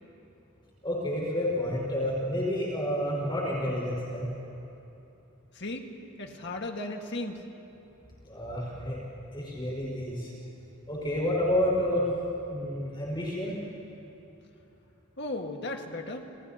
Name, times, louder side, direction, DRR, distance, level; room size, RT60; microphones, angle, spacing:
voice 1, 0.8-4.3 8.3-9.0 9.3-10.3 10.9-12.1 12.5-13.6, left 1 dB, 20° left, -3 dB, 5.4 m, -29 dB
voice 2, 5.5-5.9 6.2-7.4 15.2-16.3, left 2 dB, 55° left, 3 dB, 1.7 m, -35 dB
30.0 x 30.0 x 2.9 m, 2.9 s
head